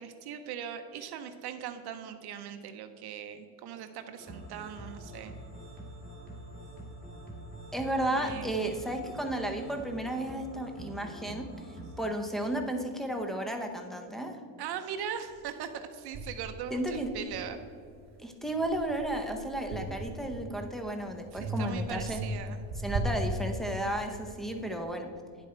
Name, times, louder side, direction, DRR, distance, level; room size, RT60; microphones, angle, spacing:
voice 1, 0.0-5.3 8.1-8.8 14.6-17.6 21.3-22.6, right 8 dB, 55° right, 8 dB, 0.7 m, -40 dB
sound 1, 4.2-12.1, right 1 dB, 25° left, 2.2 m, -45 dB
voice 2, 7.7-11.5 12.0-14.4 16.7-17.1 18.2-22.2 22.8-25.1, right 1 dB, ahead, 4 dB, 0.6 m, -33 dB
sound 2, 15.3-15.4 16.1-18.0 18.4-20.8 21.4-24.1, right 1 dB, 35° right, 1.0 m, -37 dB
9.8 x 7.3 x 4.3 m, 2.4 s
cardioid pair, 165°, 46 cm